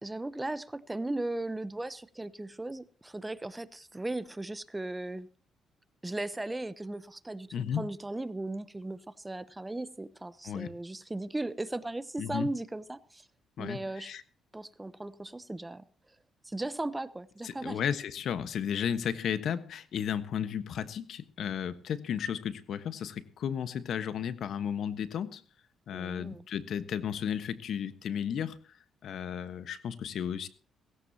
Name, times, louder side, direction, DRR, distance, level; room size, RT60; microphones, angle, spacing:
voice 1, 0.0-5.3 6.0-13.3 13.6-14.1 14.5-15.8 16.4-17.8 25.9-26.4, right 2 dB, 15° right, 0.8 m, -37 dB
voice 2, 7.5-7.9 10.4-10.8 12.2-12.5 13.6-14.2 17.4-25.4 25.9-28.6 29.0-30.5, left 8 dB, 65° left, 1.3 m, -34 dB
17.5 x 16.5 x 2.9 m
cardioid pair, 90°, 0 cm